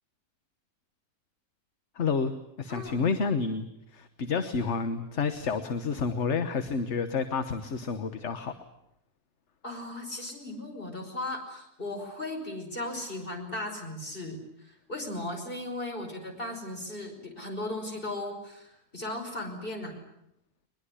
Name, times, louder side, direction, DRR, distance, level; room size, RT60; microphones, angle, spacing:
voice 1, 1.9-2.3 2.6-8.6, left 5 dB, 50° left, 10 dB, 1.4 m, -29 dB
voice 2, 2.7-3.0 9.6-20.0, left 1 dB, 35° left, 3 dB, 5.4 m, -37 dB
22.0 x 21.5 x 9.9 m, 0.82 s
omnidirectional pair, 1.6 m